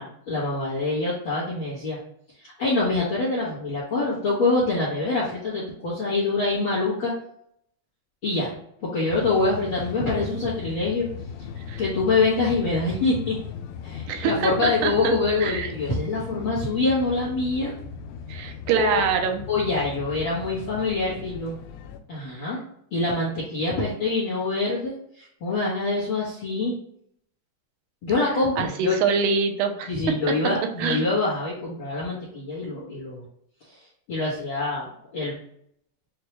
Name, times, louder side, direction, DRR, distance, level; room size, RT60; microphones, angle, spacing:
voice 1, 0.0-2.0 2.4-7.1 8.2-8.5 8.8-11.1 11.8-13.4 13.8-17.7 18.7-19.0 19.5-21.6 22.1-22.6 22.9-26.8 28.0-29.0 29.9-33.2 33.7-33.8 34.1-35.3, left 3 dB, 65° left, -8 dB, 1.2 m, -25 dB
sound 1, 9.1-22.0, left 6 dB, 90° left, 2.3 m, -38 dB
voice 2, 14.1-15.1 15.4-15.7 18.3-19.4 28.6-29.9 30.3-30.4 30.8-31.1, right 6 dB, 85° right, 4 dB, 2.4 m, -24 dB
6.4 x 2.2 x 3.0 m, 0.71 s
omnidirectional pair, 4.0 m